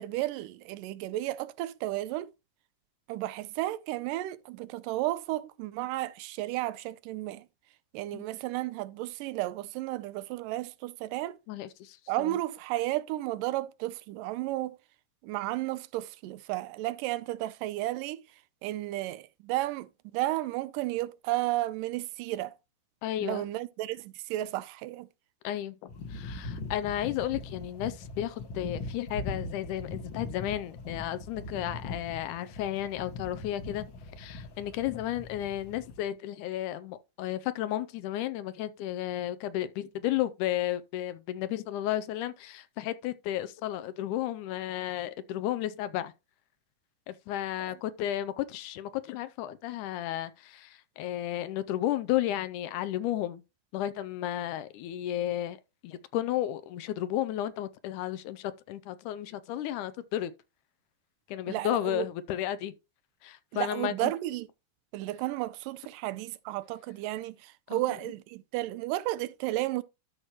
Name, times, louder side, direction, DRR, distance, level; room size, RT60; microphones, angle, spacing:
voice 1, 0.0-2.3 3.1-7.5 7.9-11.4 12.1-14.8 15.2-18.2 18.6-22.6 23.2-25.1 61.5-62.1 63.5-64.5 64.9-69.8, right 16 dB, 90° right, 2.2 m, -33 dB
voice 2, 11.5-12.4 23.0-23.4 25.4-33.9 34.2-46.1 47.1-53.4 53.7-55.6 55.8-60.3 61.3-62.7 63.2-64.1 67.7-67.8, left 12 dB, 80° left, 2.0 m, -33 dB
sound 1, 25.9-36.1, left 3 dB, 60° left, 1.3 m, -41 dB
13.0 x 4.6 x 3.0 m
omnidirectional pair, 3.8 m